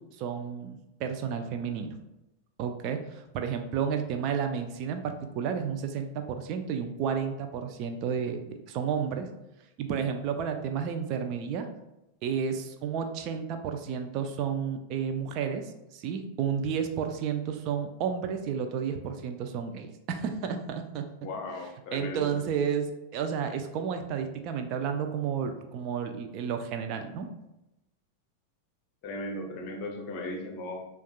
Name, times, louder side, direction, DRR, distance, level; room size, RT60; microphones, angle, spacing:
voice 1, 0.2-2.0 2.6-9.3 9.8-11.7 12.2-21.1 21.9-27.3, right 7 dB, 40° right, 6 dB, 0.4 m, -31 dB
voice 2, 21.2-22.4 29.0-30.8, left 1 dB, 40° left, 3 dB, 0.7 m, -37 dB
6.9 x 2.3 x 2.2 m, 0.91 s
figure-of-eight pair, 90°, 0 cm